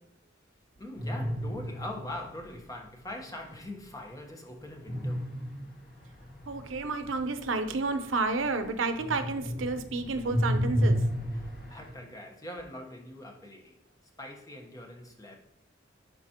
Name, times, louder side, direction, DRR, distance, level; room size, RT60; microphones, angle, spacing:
voice 1, 0.8-5.3 11.4-13.7 14.2-15.4, left 1 dB, 20° left, 1.1 m, -42 dB
sound 1, 1.0-2.6 4.8-8.6 8.9-11.9, equal, 50° left, 2.3 m, -32 dB
voice 2, 6.5-11.0, right 3 dB, 85° right, 0.7 m, -30 dB
10.5 x 4.2 x 2.9 m
head